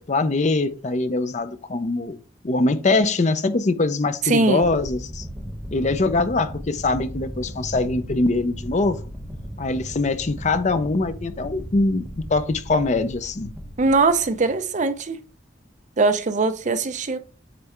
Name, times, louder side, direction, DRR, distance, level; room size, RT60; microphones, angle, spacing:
voice 1, 0.0-2.2 2.4-5.3 5.7-9.0 9.6-13.5, left 3 dB, 40° left, 0.6 m, -23 dB
voice 2, 4.2-4.7 13.8-15.2 16.0-17.2, right 3 dB, 40° right, 0.6 m, -21 dB
sound 1, 4.6-14.7, equal, 5° right, 0.9 m, -37 dB
8.2 x 3.3 x 4.4 m
head